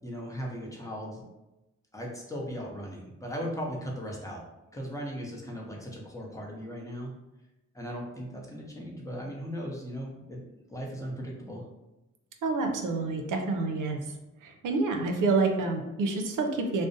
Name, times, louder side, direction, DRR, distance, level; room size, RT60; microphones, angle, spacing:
voice 1, 0.0-1.2 1.9-4.4 4.7-7.1 7.7-10.4 10.7-11.6, equal, 10° left, -2 dB, 0.7 m, -37 dB
voice 2, 12.4-14.0 14.4-16.9, right 3 dB, 80° right, 3 dB, 0.5 m, -28 dB
2.5 x 2.0 x 2.6 m, 0.98 s
cardioid pair, 70°, 31 cm